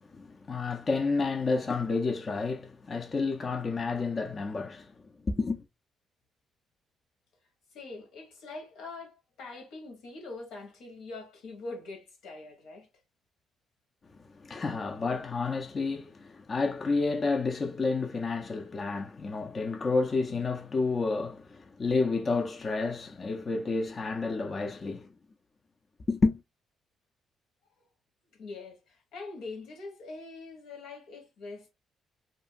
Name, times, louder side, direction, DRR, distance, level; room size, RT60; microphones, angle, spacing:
voice 1, 0.1-4.9 5.3-5.6 14.4-25.1 26.1-26.4, left 3 dB, 40° left, 0.5 m, -30 dB
voice 2, 7.7-12.9 28.3-31.7, left 3 dB, 90° left, 1.1 m, -43 dB
2.6 x 2.5 x 2.5 m
cardioid pair, 90°, 0 cm